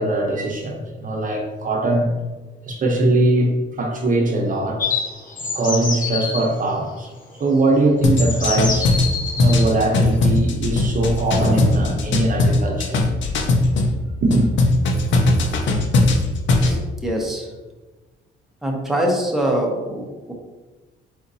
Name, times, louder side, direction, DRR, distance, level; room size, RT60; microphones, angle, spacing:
voice 1, 0.0-2.1 2.7-4.8 5.5-7.1 7.4-8.9 9.3-13.0 14.2-14.5, right 2 dB, 40° right, 1 dB, 0.8 m, -21 dB
sound 1, 4.8-6.4 7.5-7.6 8.2-9.7, left 4 dB, 40° left, 0.9 m, -26 dB
sound 2, 8.0-13.9 14.3-16.8, left 2 dB, 70° left, 0.7 m, -18 dB
voice 2, 16.6-17.5 18.6-20.3, right 1 dB, ahead, -1 dB, 0.8 m, -24 dB
4.3 x 3.9 x 2.6 m, 1.2 s
cardioid pair, 90°, 20 cm